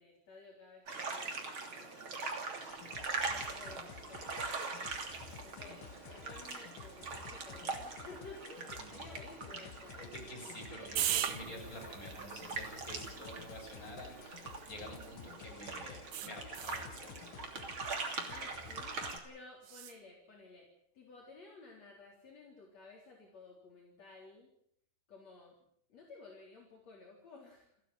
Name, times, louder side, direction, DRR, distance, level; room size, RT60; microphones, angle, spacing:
voice 1, 0.0-3.0 3.3-4.8 5.4-10.0 18.3-20.7 20.9-24.5 25.1-25.6 25.9-27.8, left 3 dB, 55° left, -1 dB, 4.9 m, -55 dB
sound 1, 0.9-19.2, right 4 dB, 40° right, 3.6 m, -42 dB
sound 2, 2.7-19.2, left 10 dB, 90° left, 2.7 m, -53 dB
voice 2, 10.0-17.3, equal, 25° left, 1 dB, 7.5 m, -49 dB
sound 3, 11.0-15.4 16.1-16.9 19.6-20.0, right 11 dB, 65° right, 1.5 m, -41 dB
29.5 x 11.0 x 9.5 m, 0.70 s
omnidirectional pair, 3.8 m